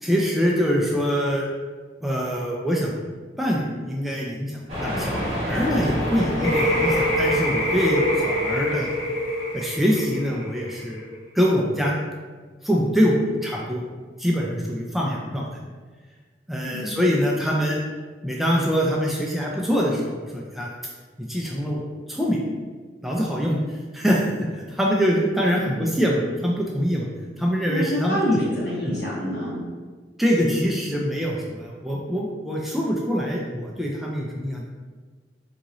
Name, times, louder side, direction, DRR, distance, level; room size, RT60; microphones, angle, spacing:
voice 1, 0.0-1.5 2.0-3.0 3.4-8.9 9.5-12.0 12.6-13.8 14.2-15.5 16.5-17.8 18.2-20.7 21.3-22.4 23.0-23.6 23.9-24.2 24.7-27.1 27.4-28.4 30.2-34.7, equal, ahead, -3 dB, 0.3 m, -24 dB
sound 1, 4.7-9.2, equal, 40° right, 1.0 m, -30 dB
sound 2, 6.4-11.1, equal, 55° left, 1.3 m, -24 dB
voice 2, 27.7-29.6, equal, 70° left, -7 dB, 1.4 m, -27 dB
3.8 x 2.5 x 2.9 m, 1.4 s
head